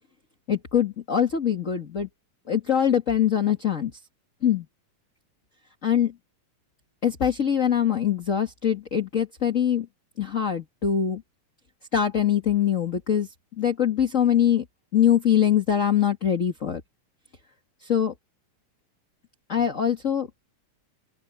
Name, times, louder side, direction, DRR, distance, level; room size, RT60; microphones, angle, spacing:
voice 1, 0.5-2.1 2.5-3.9 4.4-4.6 5.8-6.1 7.0-9.9 10.2-11.2 11.9-13.3 13.6-14.6 14.9-16.8 17.8-18.1 19.5-20.3, left 9 dB, 35° left, 1.4 m, -23 dB
open air
omnidirectional pair, 3.8 m